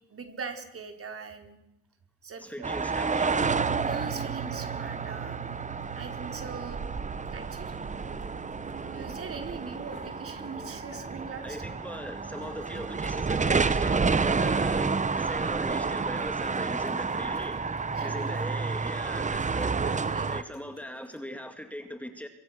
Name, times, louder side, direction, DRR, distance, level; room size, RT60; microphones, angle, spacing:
voice 1, 0.1-1.6 2.2-2.8 3.9-5.6 5.9-6.9 7.3-7.7 8.6-11.6 18.0-18.1 19.8-20.3, right 5 dB, 50° right, 5 dB, 4.2 m, -41 dB
voice 2, 2.4-3.6 11.4-22.3, equal, 5° left, 6 dB, 2.2 m, -40 dB
sound 1, 2.6-20.4, right 4 dB, 25° right, 1.1 m, -30 dB
sound 2, 3.4-11.5, right 13 dB, 80° right, 1.6 m, -42 dB
sound 3, 8.0-21.2, left 5 dB, 85° left, 3.5 m, -54 dB
25.0 x 24.0 x 6.6 m, 0.86 s
cardioid pair, 90°, 30 cm